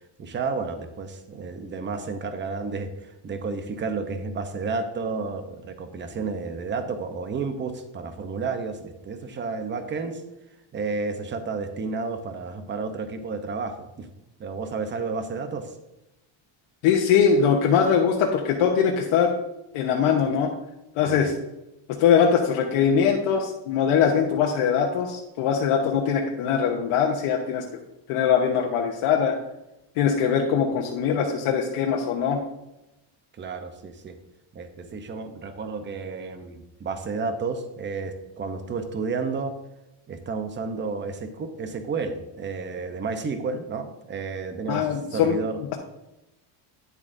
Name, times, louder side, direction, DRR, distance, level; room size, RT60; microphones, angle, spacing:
voice 1, 0.2-10.2 10.7-14.1 14.4-15.7 21.0-21.3 33.3-34.2 34.5-39.5 40.1-45.6, right 4 dB, 25° right, 8 dB, 0.7 m, -31 dB
voice 2, 16.8-19.3 19.7-20.5 21.0-21.3 22.0-27.6 28.1-29.3 30.0-32.4 44.7-45.4, left 7 dB, 75° left, 0 dB, 1.1 m, -22 dB
9.9 x 7.3 x 2.6 m, 0.92 s
cardioid pair, 155°, 50 cm